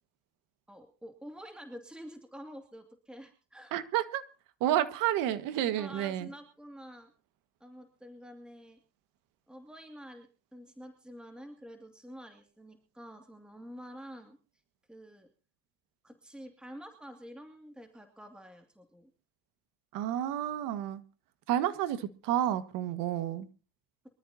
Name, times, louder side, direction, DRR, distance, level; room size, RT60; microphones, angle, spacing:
voice 1, 0.7-3.8 5.8-7.1 7.6-8.8 9.5-14.4 14.9-15.3 16.0-19.1, equal, 5° right, 2.5 m, -48 dB
voice 2, 3.7-4.2 4.6-6.3 19.9-21.0 21.5-23.5, right 12 dB, 75° right, 1.8 m, -30 dB
24.5 x 13.5 x 2.9 m
cardioid pair, 115°, 33 cm